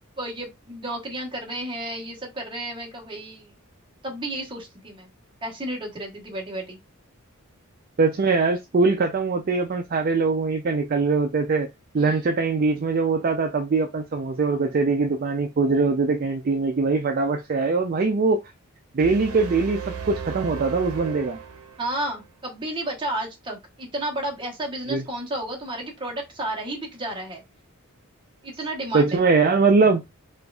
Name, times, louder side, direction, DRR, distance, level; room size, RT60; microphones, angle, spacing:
voice 1, 0.2-3.5 4.0-5.1 5.4-6.8 12.0-12.2 21.8-27.4 28.4-29.2, right 1 dB, 20° right, 1.0 m, -32 dB
voice 2, 8.0-11.7 11.9-18.4 18.9-21.4 24.9-25.0 28.9-30.0, right 4 dB, 40° right, 0.4 m, -22 dB
sound 1, 19.0-22.2, right 7 dB, 80° right, 0.7 m, -35 dB
4.3 x 2.5 x 2.3 m
head